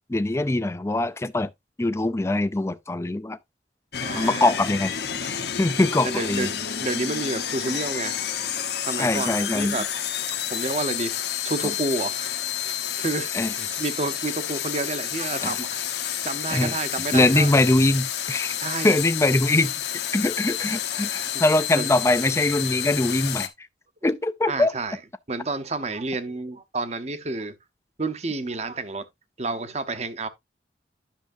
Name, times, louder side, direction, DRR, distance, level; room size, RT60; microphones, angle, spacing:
voice 1, 0.1-1.5 1.8-3.4 4.1-4.9 5.6-6.5 9.0-9.8 13.3-13.5 15.4-15.6 16.5-16.8 17.1-18.6 18.8-19.7 20.1-23.5 24.0-24.7, left 2 dB, 15° left, 0.4 m, -22 dB
sound 1, 3.9-23.5, left 9 dB, 60° left, 0.9 m, -30 dB
voice 2, 4.0-4.5 6.0-10.1 10.5-11.1 11.4-12.3 12.6-13.3 13.6-15.8 16.2-17.5 18.6-19.0 21.3-21.4 21.7-21.9 24.5-25.0 25.3-27.5 28.0-29.1 29.4-30.3, right 3 dB, 35° right, 0.8 m, -30 dB
10.5 x 6.3 x 2.6 m
head